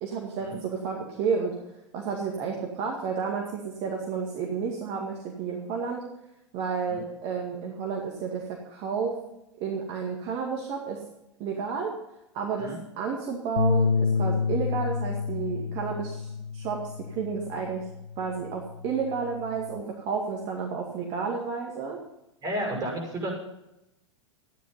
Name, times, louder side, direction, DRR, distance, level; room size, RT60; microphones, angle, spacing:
voice 1, 0.0-1.5 1.9-6.0 6.5-9.2 9.6-11.0 11.4-11.9 12.3-16.8 17.1-17.9 18.2-22.0, right 5 dB, 40° right, 0 dB, 2.2 m, -31 dB
sound 1, 13.6-19.8, left 5 dB, 75° left, 0.7 m, -29 dB
voice 2, 22.4-23.3, right 1 dB, 20° right, 1 dB, 6.2 m, -32 dB
13.0 x 10.5 x 5.7 m, 0.90 s
figure-of-eight pair, 95°, 15 cm